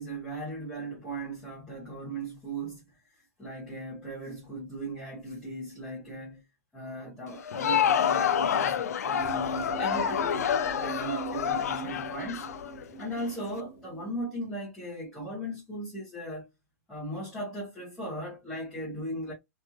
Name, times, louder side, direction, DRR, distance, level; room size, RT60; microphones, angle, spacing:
voice 1, 0.0-2.9 3.4-6.4 6.7-12.5 13.0-16.5 16.9-19.3, right 1 dB, 5° left, 1.0 m, -37 dB
Crowd, 7.3-13.2, left 8 dB, 75° left, 0.4 m, -28 dB
sound 1, 9.2-14.1, right 5 dB, 20° left, 1.7 m, -41 dB
3.0 x 2.6 x 2.3 m
hypercardioid pair, 175°, 8 cm